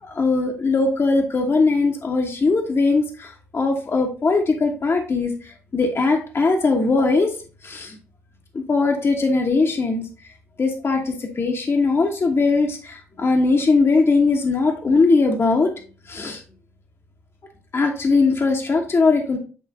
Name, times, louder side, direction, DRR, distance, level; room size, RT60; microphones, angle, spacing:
voice 1, 0.0-7.3 7.6-8.0 8.5-10.0 10.6-15.7 16.1-16.4 17.7-19.4, left 3 dB, 35° left, 1 dB, 1.2 m, -20 dB
8.5 x 3.1 x 3.7 m, 0.38 s
hypercardioid pair, 45°, 7 cm